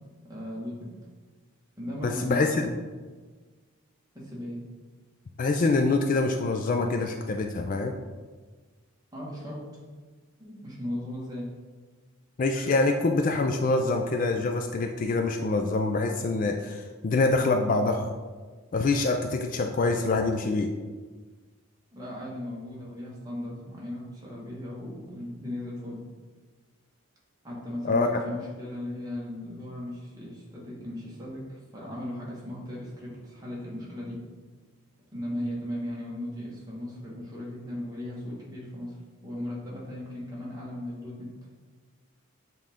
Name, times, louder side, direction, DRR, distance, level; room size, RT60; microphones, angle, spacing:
voice 1, 0.2-0.9 1.8-2.8 4.1-4.6 9.1-9.6 10.4-11.5 21.9-26.0 27.4-34.2 35.1-39.0 39.2-41.3, left 1 dB, 15° right, -6 dB, 1.5 m, -37 dB
voice 2, 2.0-2.7 5.4-7.9 12.4-18.1 18.7-20.7 27.8-28.1, left 3 dB, 40° left, 4 dB, 0.3 m, -25 dB
7.6 x 3.8 x 3.6 m, 1.4 s
head